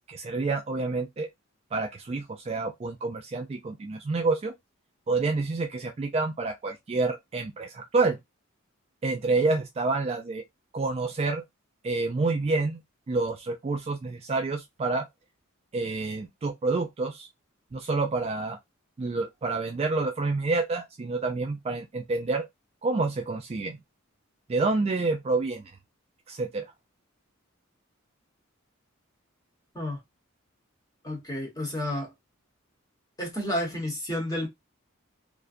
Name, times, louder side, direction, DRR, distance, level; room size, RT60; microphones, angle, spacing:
voice 1, 0.1-1.3 1.7-4.5 5.1-8.2 9.0-10.4 10.7-11.4 11.8-12.8 13.1-15.1 15.7-17.3 17.7-18.6 19.0-22.5 22.8-23.8 24.5-25.6 26.3-26.7, right 3 dB, 30° right, 0.3 m, -28 dB
voice 2, 31.0-32.1 33.2-34.5, left 1 dB, 15° left, 1.0 m, -31 dB
2.5 x 2.2 x 2.4 m
head